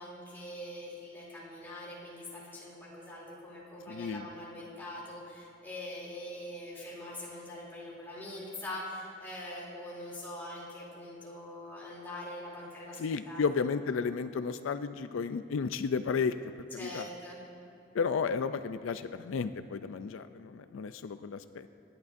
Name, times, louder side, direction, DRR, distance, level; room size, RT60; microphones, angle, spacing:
voice 1, 0.0-13.4 16.8-17.4, left 1 dB, 10° left, -7 dB, 3.0 m, -43 dB
voice 2, 3.9-4.3 12.9-17.1 17.9-21.7, left 5 dB, 80° left, 11 dB, 0.4 m, -33 dB
25.5 x 11.0 x 2.6 m, 2.7 s
head